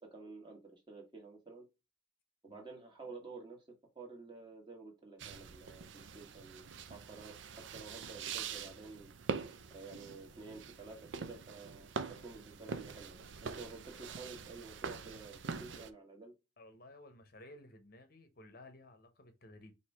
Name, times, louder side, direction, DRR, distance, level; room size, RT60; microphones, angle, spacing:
voice 1, 0.0-1.7 2.4-3.6 3.9-9.1 9.7-16.3, right 3 dB, 25° right, 1.3 m, -51 dB
sound 1, 5.2-15.9, right 5 dB, 70° right, 0.5 m, -44 dB
voice 2, 16.6-19.7, left 1 dB, 50° left, 0.7 m, -56 dB
4.7 x 2.7 x 3.3 m
head